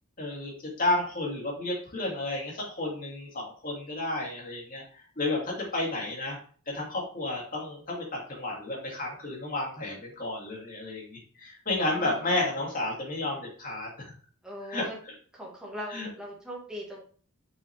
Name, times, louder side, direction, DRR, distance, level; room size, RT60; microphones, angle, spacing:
voice 1, 0.2-0.5 0.8-4.8 5.2-6.4 6.7-14.1 14.7-14.8 15.9-16.1, left 2 dB, 40° left, -2 dB, 2.7 m, -31 dB
voice 2, 11.8-12.3 14.4-15.0 15.3-17.0, equal, 5° right, -5 dB, 2.3 m, -40 dB
6.4 x 6.0 x 3.3 m, 0.43 s
head